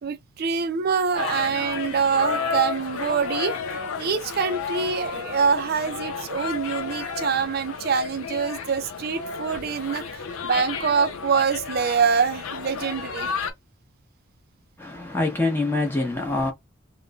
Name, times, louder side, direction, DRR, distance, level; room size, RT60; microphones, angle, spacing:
voice 1, 0.0-3.6 4.0-13.3, right 6 dB, 50° right, 0.4 m, -25 dB
sound 1, 1.2-13.5, left 5 dB, 90° left, 0.6 m, -32 dB
voice 2, 14.8-16.5, left 2 dB, 10° left, 0.8 m, -25 dB
3.0 x 2.2 x 2.3 m
head